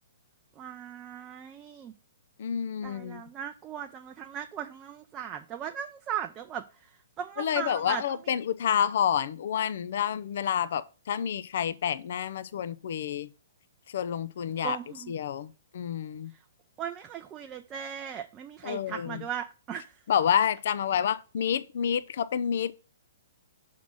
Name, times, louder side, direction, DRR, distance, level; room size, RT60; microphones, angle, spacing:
voice 1, 0.6-1.9 2.8-6.6 7.2-8.0 14.6-15.1 16.8-19.9, right 9 dB, 25° right, 0.5 m, -37 dB
voice 2, 2.4-3.2 7.4-13.3 13.9-14.8 15.1-16.3 18.6-19.2 20.1-22.7, left 8 dB, 60° left, 0.5 m, -29 dB
6.1 x 3.7 x 6.1 m
figure-of-eight pair, 125°, 0 cm